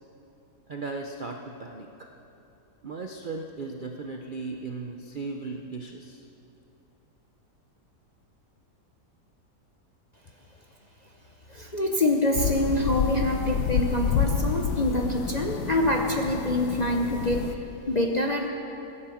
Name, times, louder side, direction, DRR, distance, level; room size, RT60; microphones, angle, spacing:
voice 1, 0.7-2.1 2.8-6.2, right 3 dB, 50° right, 3 dB, 0.6 m, -36 dB
voice 2, 11.5-17.5 17.9-18.5, left 1 dB, 35° left, 1 dB, 0.7 m, -26 dB
sound 1, 12.3-17.5, left 7 dB, 75° left, 1.2 m, -29 dB
16.5 x 9.7 x 7.1 m, 2.9 s
omnidirectional pair, 1.8 m